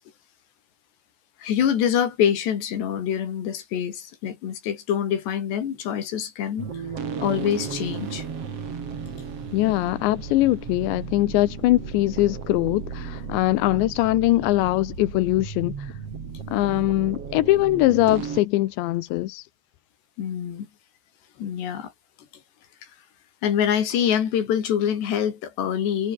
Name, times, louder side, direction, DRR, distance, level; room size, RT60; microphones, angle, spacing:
voice 1, 1.4-6.7 7.2-8.2 20.2-20.7 21.4-21.9 23.4-26.1, left 9 dB, 70° left, 5.2 m, -25 dB
sound 1, 6.6-18.4, right 6 dB, 40° right, 3.2 m, -35 dB
voice 2, 9.5-16.0 16.5-19.5, left 17 dB, 85° left, 3.2 m, -22 dB
omnidirectional pair, 5.2 m